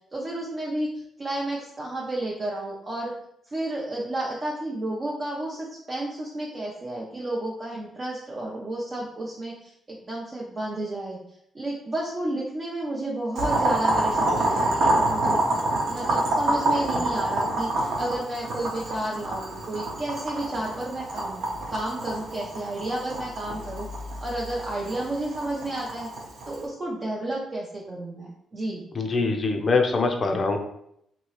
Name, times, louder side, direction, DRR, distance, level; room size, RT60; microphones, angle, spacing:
voice 1, 0.1-3.1 3.5-11.2 11.5-15.6 15.9-21.4 21.7-23.9 24.2-26.1 26.5-28.9, right 1 dB, 30° right, -4 dB, 0.5 m, -31 dB
Boiling, 13.4-26.6, right 1 dB, 75° right, 0.9 m, -27 dB
voice 2, 28.9-30.6, left 3 dB, 35° left, 4 dB, 0.5 m, -23 dB
2.9 x 2.8 x 3.0 m, 0.74 s
cardioid pair, 115°, 0 cm